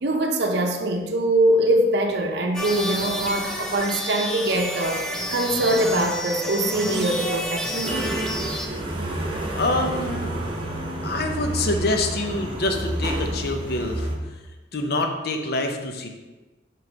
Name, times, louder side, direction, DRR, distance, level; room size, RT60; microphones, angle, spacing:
voice 1, 0.0-8.2, right 1 dB, 60° right, 3 dB, 0.6 m, -23 dB
sound 1, 2.5-8.7, equal, 5° left, 0.6 m, -29 dB
sound 2, 7.8-14.2, right 1 dB, 25° right, 0.8 m, -29 dB
voice 2, 9.6-10.3 11.0-14.3 14.7-16.1, left 2 dB, 55° left, 4 dB, 0.7 m, -26 dB
6.1 x 3.1 x 5.1 m, 1.2 s
head